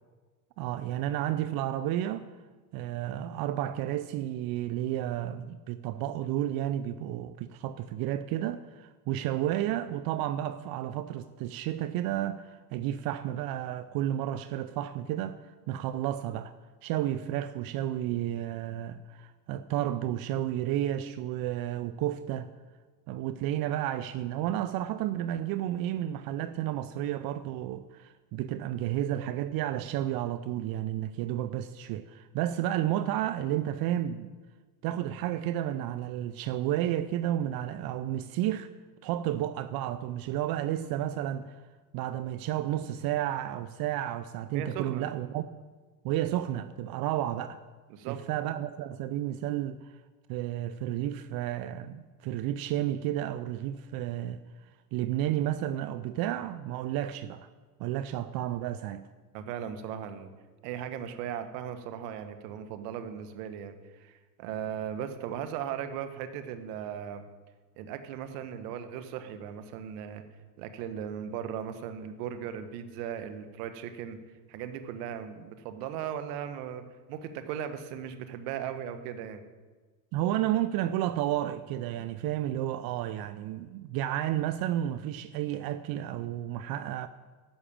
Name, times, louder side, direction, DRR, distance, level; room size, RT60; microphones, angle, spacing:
voice 1, 0.6-2.3 2.7-15.4 15.7-16.5 16.8-22.5 23.1-34.3 34.8-38.7 39.0-41.6 41.9-45.4 46.0-47.6 48.0-49.9 50.3-54.4 54.9-57.5 57.8-59.1 80.1-87.1, right 12 dB, 45° right, 0.6 m, -32 dB
voice 2, 44.5-45.1 47.9-48.2 59.3-60.3 60.6-67.2 67.8-70.2 70.6-74.2 74.5-76.8 77.1-79.4, right 9 dB, 65° right, 1.4 m, -37 dB
11.5 x 6.4 x 8.7 m
supercardioid pair, 105°, 50 cm